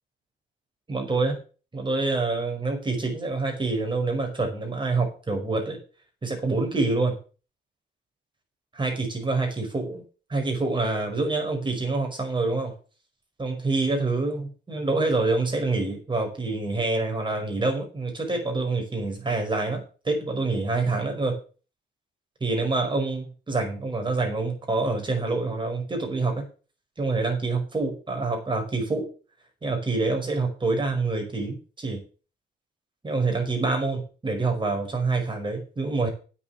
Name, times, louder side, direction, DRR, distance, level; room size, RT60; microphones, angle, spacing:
voice 1, 0.9-1.4 1.7-5.8 6.2-7.2 8.7-10.0 10.3-12.7 13.4-21.4 22.4-26.5 27.0-29.1 29.6-32.0 33.0-36.1, right 3 dB, 25° right, 2 dB, 5.5 m, -26 dB
8.5 x 7.4 x 7.3 m, 0.36 s
cardioid pair, 90°, 20 cm